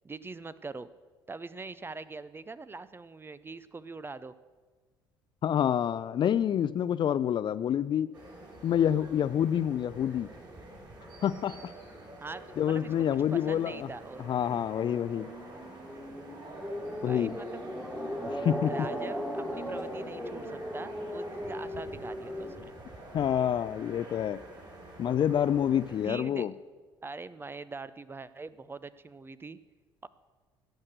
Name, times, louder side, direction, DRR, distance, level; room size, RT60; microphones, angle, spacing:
voice 1, 0.0-0.9 1.3-4.3 12.2-12.9 13.3-14.3 17.0-17.6 18.7-19.2 19.5-22.7 26.0-26.5 27.0-29.6 30.0-30.1, right 3 dB, 20° right, 15 dB, 0.6 m, -43 dB
voice 2, 5.4-8.1 8.6-10.3 11.2-11.7 12.6-13.9 14.3-15.3 17.0-17.3 18.3-18.7 23.1-24.4 25.0-26.5, left 9 dB, 40° left, 16 dB, 0.4 m, -27 dB
sound 1, 8.1-26.1, right 1 dB, 35° right, 4.1 m, -47 dB
sound 2, 13.3-22.6, equal, 5° right, 1.8 m, -38 dB
16.5 x 6.5 x 6.6 m, 1.4 s
figure-of-eight pair, 55°, 12 cm